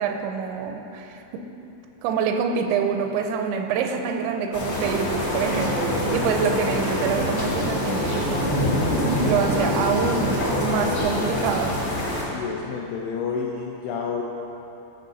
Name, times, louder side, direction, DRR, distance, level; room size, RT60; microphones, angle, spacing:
voice 1, 0.0-1.5 2.0-8.7 9.0-11.8, right 6 dB, 85° right, 4 dB, 3.0 m, -26 dB
sound 1, 4.5-12.2, left 1 dB, 45° left, 1.6 m, -25 dB
voice 2, 12.2-14.2, left 6 dB, 85° left, -1 dB, 2.3 m, -29 dB
14.0 x 6.4 x 4.0 m, 2.9 s
omnidirectional pair, 5.1 m